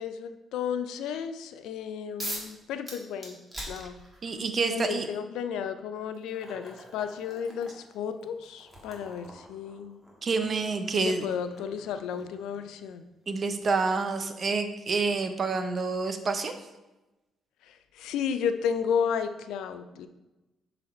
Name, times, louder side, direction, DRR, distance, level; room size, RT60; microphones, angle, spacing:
voice 1, 0.0-3.4 3.7-4.0 4.7-10.0 10.9-13.1 17.6-20.1, left 7 dB, 90° left, 9 dB, 0.4 m, -33 dB
sound 1, 2.2-2.5 2.9-4.4 5.5-5.6 6.1-12.8, equal, 10° right, 1.7 m, -44 dB
voice 2, 4.2-5.0 10.2-11.3 13.3-16.5, right 4 dB, 45° right, 8 dB, 0.7 m, -28 dB
Laughter, 6.3-7.3, left 1 dB, 30° left, 1.8 m, -52 dB
6.4 x 4.0 x 4.2 m, 1.0 s
cardioid pair, 90°, 0 cm